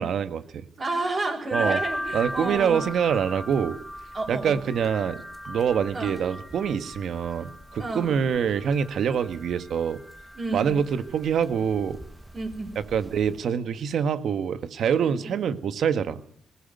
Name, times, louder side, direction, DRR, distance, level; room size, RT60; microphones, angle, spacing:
voice 1, 0.0-0.7 1.5-1.8 2.1-3.8 4.3-10.0 10.5-12.0 12.7-16.2, right 7 dB, 65° right, 10 dB, 1.7 m, -25 dB
voice 2, 0.8-2.8 4.1-4.6 5.9-6.2 7.8-8.2 10.3-10.8 12.3-12.7 15.0-15.3, right 2 dB, 35° right, -3 dB, 5.6 m, -31 dB
sound 1, 1.5-13.4, equal, 5° right, 1.4 m, -38 dB
20.0 x 18.0 x 9.4 m, 0.65 s
cardioid pair, 90°, 0 cm